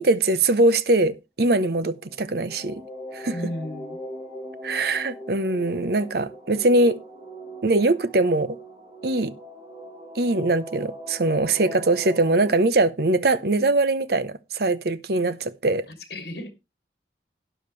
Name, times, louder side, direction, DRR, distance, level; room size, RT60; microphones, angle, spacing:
voice 1, 0.0-2.8 3.1-3.4 4.6-7.0 7.6-8.6 9.0-9.3 10.1-15.9, right 2 dB, 60° right, 0.7 m, -22 dB
sound 1, 1.9-12.6, right 1 dB, 20° right, 3.8 m, -40 dB
voice 2, 3.3-4.0 16.1-16.5, left 1 dB, 60° left, 2.6 m, -33 dB
12.0 x 10.0 x 3.2 m
head